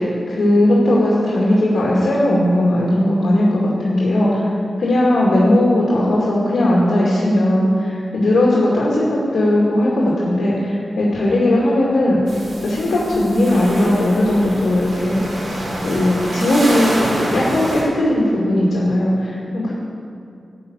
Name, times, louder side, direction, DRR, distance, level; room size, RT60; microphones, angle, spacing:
voice 1, 0.0-4.5 4.8-12.2 12.6-15.2 15.8-19.7, left 1 dB, 80° left, -5 dB, 2.4 m, -17 dB
sound 1, 12.3-17.8, right 1 dB, 65° right, 3.2 m, -27 dB
13.5 x 6.0 x 8.2 m, 2.4 s
wide cardioid pair, 105°, 0 cm